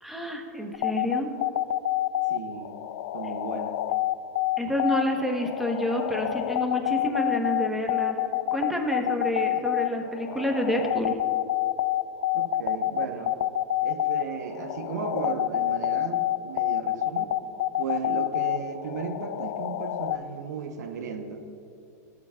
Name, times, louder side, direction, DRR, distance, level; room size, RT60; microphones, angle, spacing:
voice 1, 0.0-1.3 4.6-8.2 8.5-11.2, equal, ahead, 2 dB, 1.0 m, -28 dB
sound 1, 0.7-20.2, left 14 dB, 70° left, 0.4 m, -27 dB
voice 2, 2.3-2.8 3.1-3.8 12.3-13.4 13.8-17.4 17.8-21.5, right 6 dB, 85° right, 7 dB, 0.9 m, -35 dB
16.5 x 8.2 x 2.3 m, 2.6 s
supercardioid pair, 135°, 9 cm